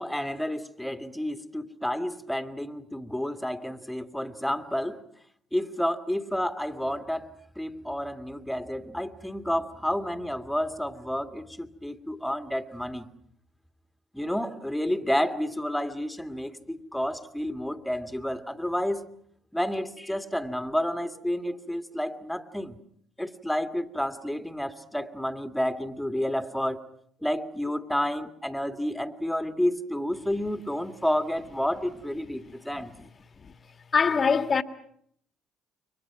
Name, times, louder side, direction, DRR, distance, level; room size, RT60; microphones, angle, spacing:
voice 1, 0.0-5.0 5.5-7.3 7.6-13.1 14.1-19.0 19.5-22.8 23.2-26.8 27.2-32.9, equal, 5° left, 2.0 m, -30 dB
voice 2, 33.9-34.6, left 5 dB, 40° left, 1.7 m, -23 dB
29.5 x 23.5 x 6.0 m
hypercardioid pair, 55°, 0 cm